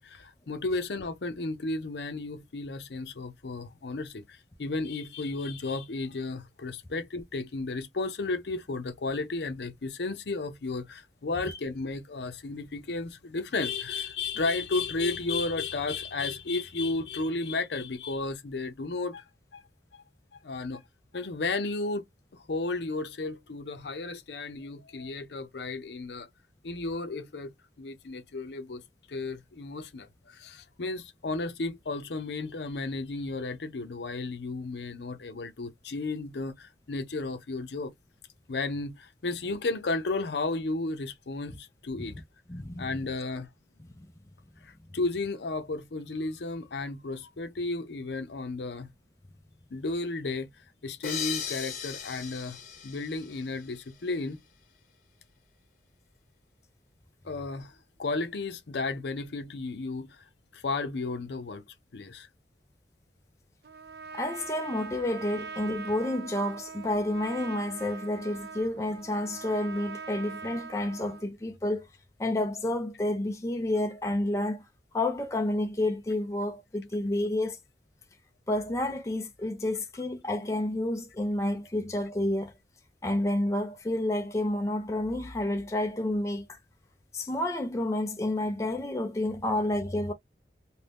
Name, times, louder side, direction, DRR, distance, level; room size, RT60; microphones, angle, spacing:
voice 1, 0.0-19.2 19.5-19.6 19.9-20.0 20.3-20.8 21.1-22.0 22.3-26.3 26.6-27.5 27.8-28.8 29.1-37.9 38.5-42.2 42.8-43.5 44.6-48.9 49.7-50.5 50.8-54.4 57.2-60.2 60.5-61.6 61.9-62.3, left 3 dB, 75° left, 0.6 m, -33 dB
voice 2, 42.5-42.9 44.0-44.1 64.1-71.9 72.2-74.6 74.9-77.6 78.5-82.5 83.0-86.6 87.1-90.1, left 1 dB, 15° left, 0.4 m, -30 dB
sound 1, 51.0-54.1, left 8 dB, 50° left, 1.1 m, -38 dB
Trumpet, 63.6-71.3, right 5 dB, 60° right, 0.4 m, -42 dB
2.6 x 2.1 x 3.3 m
head